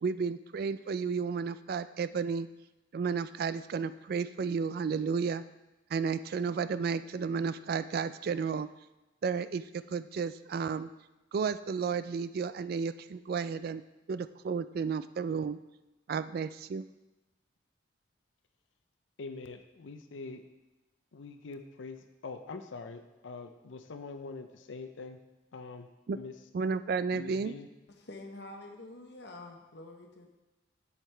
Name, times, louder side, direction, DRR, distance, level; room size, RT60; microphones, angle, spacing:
voice 1, 0.0-2.5 2.9-5.4 5.9-8.7 9.2-9.6 9.9-10.9 11.3-13.8 14.1-15.6 16.1-16.9 26.1-26.2 26.5-27.6, right 5 dB, 55° right, 14 dB, 0.3 m, -32 dB
voice 2, 19.2-20.4 21.1-25.2 25.5-25.9 26.1-26.3 27.1-27.7, left 3 dB, 85° left, 7 dB, 0.5 m, -44 dB
voice 3, 27.9-30.3, left 2 dB, 60° left, 2 dB, 0.9 m, -47 dB
8.1 x 7.2 x 3.4 m, 1.0 s
head